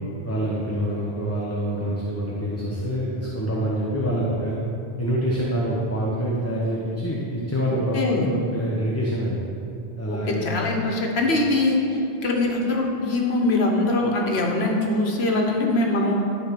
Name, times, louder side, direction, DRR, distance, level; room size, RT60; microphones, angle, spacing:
voice 1, 0.2-4.5 5.0-9.4 10.0-10.5, equal, 15° left, -5 dB, 0.9 m, -26 dB
voice 2, 7.9-8.3 10.1-11.8 12.2-16.2, left 2 dB, 85° left, 0 dB, 1.4 m, -22 dB
12.0 x 4.0 x 6.0 m, 2.9 s
omnidirectional pair, 1.0 m